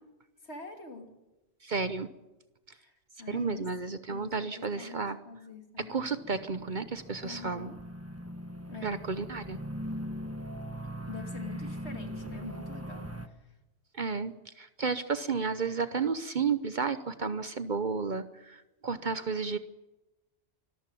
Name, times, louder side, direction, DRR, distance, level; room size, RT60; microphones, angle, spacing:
voice 1, 0.4-1.1 2.8-2.9 3.2-3.7 4.1-6.2 7.2-7.8 8.7-9.0 11.1-13.4, left 4 dB, 65° left, 4 dB, 3.0 m, -45 dB
voice 2, 1.6-2.1 3.3-5.2 5.8-7.7 8.8-9.6 13.9-19.6, right 5 dB, 45° right, 12 dB, 0.9 m, -32 dB
sound 1, 6.1-13.3, equal, 15° right, 1.2 m, -40 dB
24.5 x 14.0 x 9.1 m, 1.0 s
omnidirectional pair, 1.2 m